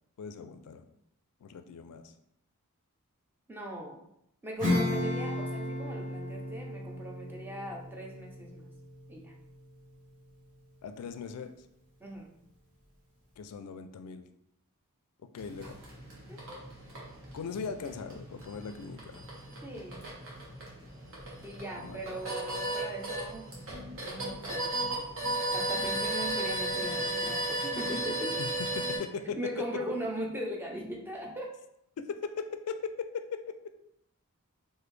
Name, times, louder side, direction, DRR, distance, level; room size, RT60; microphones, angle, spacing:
voice 1, 0.2-0.8 1.4-2.0 10.8-11.5 13.4-14.3 15.3-15.8 17.3-19.3 21.8-22.0 28.4-28.5 28.8-29.4 32.0-33.6, left 5 dB, 80° left, 9 dB, 0.3 m, -39 dB
voice 2, 3.5-4.0 4.4-8.7 9.1-9.3 12.0-12.3 16.3-16.6 19.6-20.0 21.4-23.5 24.0-24.7 25.5-28.4 29.4-31.5, right 1 dB, 10° right, 0 dB, 0.6 m, -39 dB
Acoustic guitar / Strum, 4.6-10.6, left 1 dB, 35° right, 1.4 m, -34 dB
sound 1, 15.4-29.0, right 1 dB, 65° right, 1.2 m, -35 dB
sound 2, 23.7-31.3, left 2 dB, 80° right, 1.0 m, -49 dB
4.0 x 2.6 x 3.2 m, 0.78 s
head